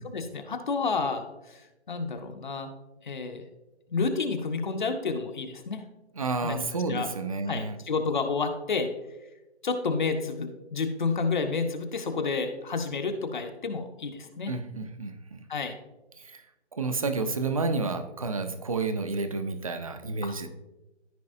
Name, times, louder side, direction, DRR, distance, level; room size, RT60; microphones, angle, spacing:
voice 1, 0.0-1.6 1.9-2.7 3.0-3.4 3.9-5.8 6.4-7.1 7.5-8.9 9.6-14.5 15.5-15.7 20.2-20.3, left 4 dB, 45° left, 6 dB, 0.9 m, -30 dB
voice 2, 6.2-7.8 14.5-15.4 16.2-16.4 16.7-20.5, right 3 dB, 30° right, 9 dB, 0.6 m, -30 dB
14.0 x 4.7 x 2.6 m, 1.0 s
figure-of-eight pair, 160°, 34 cm